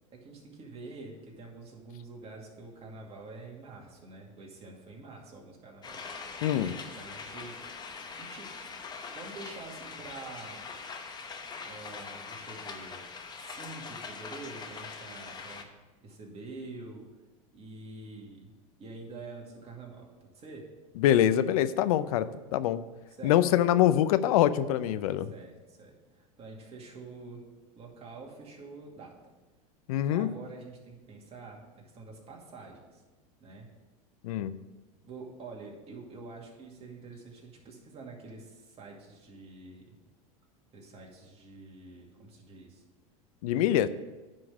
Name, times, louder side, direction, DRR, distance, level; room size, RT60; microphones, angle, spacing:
voice 1, 0.1-6.1 6.6-7.6 8.0-8.5 9.1-10.6 11.6-13.0 13.3-15.7 16.0-17.1 17.5-18.5 18.8-20.1 20.3-20.7 23.2-23.4 25.3-27.4 27.7-29.1 30.0-33.0 33.4-33.7 35.0-39.9 40.7-42.8, right 3 dB, 35° right, -1 dB, 2.3 m, -47 dB
sound 1, 5.8-15.6, left 5 dB, 20° left, 1.0 m, -42 dB
voice 2, 6.4-6.7 21.0-22.8 23.2-25.3 29.9-30.3 34.2-34.5 43.4-43.9, left 11 dB, 70° left, 14 dB, 0.5 m, -24 dB
10.0 x 3.9 x 7.2 m, 1.2 s
hypercardioid pair, 100°, 19 cm